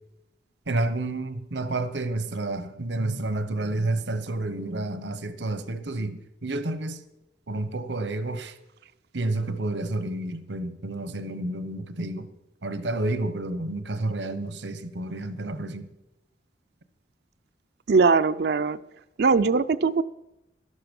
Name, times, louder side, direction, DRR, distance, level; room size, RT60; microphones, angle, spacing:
voice 1, 0.7-7.0 7.5-8.6 9.1-12.3 12.6-15.9, right 2 dB, 90° right, 1.0 m, -30 dB
voice 2, 17.9-18.8 19.2-20.0, right 4 dB, 65° right, 0.4 m, -20 dB
12.5 x 11.5 x 5.4 m
head